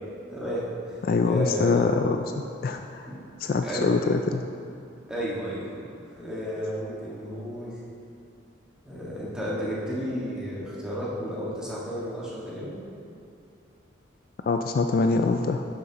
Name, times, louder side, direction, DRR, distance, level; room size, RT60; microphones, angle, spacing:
voice 1, 0.3-1.8 3.0-3.2 3.6-4.0 5.1-5.8 6.1-7.8 8.8-12.8, equal, 5° right, -8 dB, 1.7 m, -32 dB
voice 2, 1.0-3.1 3.4-4.4 14.5-15.6, left 4 dB, 50° left, 5 dB, 0.3 m, -24 dB
12.0 x 7.4 x 3.0 m, 2.5 s
head